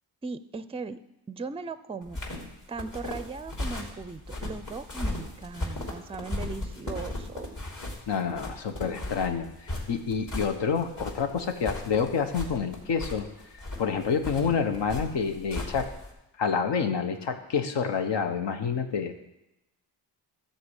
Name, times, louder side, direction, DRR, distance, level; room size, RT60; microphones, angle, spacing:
voice 1, 0.2-1.0 1.3-2.2 2.7-7.6, right 4 dB, 15° right, 14 dB, 0.4 m, -38 dB
sound 1, 2.0-16.1, left 2 dB, 45° left, 3.1 m, -36 dB
voice 2, 8.1-13.3 13.5-15.9 16.4-19.1, left 6 dB, 75° left, 6 dB, 1.2 m, -28 dB
13.0 x 4.4 x 8.1 m, 0.93 s
cardioid pair, 85°, 43 cm